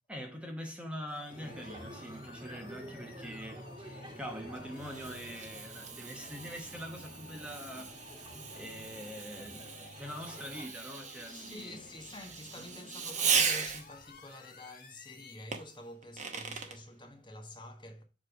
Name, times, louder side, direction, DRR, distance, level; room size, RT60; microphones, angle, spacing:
voice 1, 0.1-11.8 12.5-12.6, equal, 5° right, 1.0 m, -44 dB
sound 1, 1.1-15.9, left 4 dB, 45° left, 1.0 m, -55 dB
sound 2, 1.3-10.7, right 1 dB, 20° right, 1.4 m, -49 dB
Fireworks, 4.2-14.1 15.5-16.8, right 6 dB, 40° right, 0.9 m, -37 dB
voice 2, 11.3-18.0, left 1 dB, 25° left, 1.0 m, -48 dB
7.4 x 3.2 x 4.9 m
head